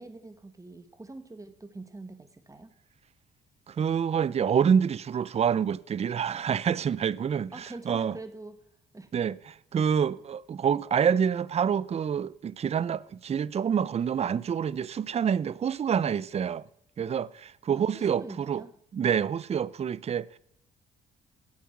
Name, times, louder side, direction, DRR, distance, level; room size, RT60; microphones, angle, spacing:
voice 1, 0.0-2.7 7.5-8.6 8.9-9.1 17.7-18.7, right 2 dB, 15° right, 1.4 m, -44 dB
voice 2, 3.7-8.2 9.1-16.6 17.0-18.6 18.9-20.4, right 7 dB, 30° right, 0.4 m, -27 dB
13.5 x 8.3 x 5.9 m
cardioid pair, 90°, 20 cm